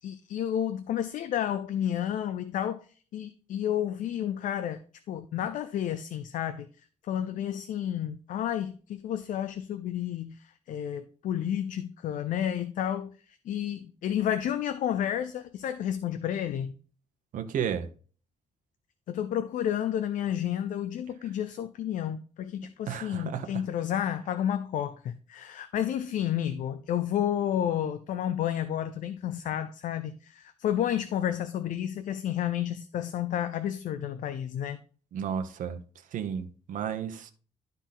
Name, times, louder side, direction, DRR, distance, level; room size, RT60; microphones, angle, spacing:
voice 1, 0.0-2.9 3.1-4.8 5.1-6.7 7.1-16.7 19.1-34.8, left 10 dB, 85° left, 0.6 m, -31 dB
voice 2, 17.3-17.9 22.9-23.5 35.1-35.8 36.1-37.3, right 8 dB, 90° right, 1.1 m, -32 dB
12.0 x 4.1 x 4.0 m
wide cardioid pair, 175°, 13 cm